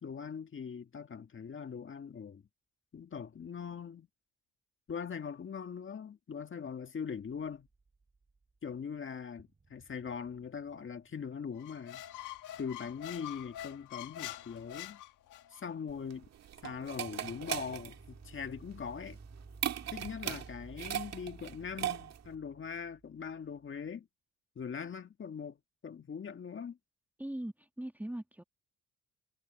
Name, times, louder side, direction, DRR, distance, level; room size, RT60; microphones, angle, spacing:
voice 1, 0.0-2.4 2.9-4.1 4.9-7.7 8.6-12.0 12.6-15.0 15.5-16.3 16.6-19.2 19.9-24.1 24.6-25.6 25.8-26.8, left 6 dB, 40° left, 1.8 m, -41 dB
sound 1, 7.2-8.6 8.9-9.0 9.4-13.8 16.9-23.9, right 3 dB, 25° right, 2.0 m, -55 dB
Squeak, 11.6-15.6, left 13 dB, 90° left, 1.8 m, -45 dB
sound 2, 15.9-22.4, right 11 dB, 60° right, 1.7 m, -39 dB
voice 2, 27.2-28.4, right 1 dB, 5° right, 1.6 m, -40 dB
cardioid pair, 90°, 30 cm